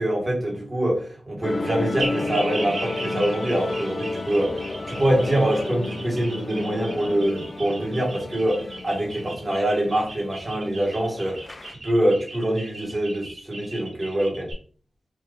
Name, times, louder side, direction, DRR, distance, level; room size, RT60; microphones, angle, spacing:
voice 1, 0.0-4.6 4.9-11.4 11.8-14.5, right 1 dB, 20° right, -2 dB, 1.1 m, -24 dB
sound 1, 1.4-11.7, left 2 dB, 35° left, 0.3 m, -32 dB
sound 2, 2.0-14.5, right 2 dB, 45° right, 1.0 m, -37 dB
2.8 x 2.3 x 3.5 m, 0.43 s
wide cardioid pair, 135°, 0 cm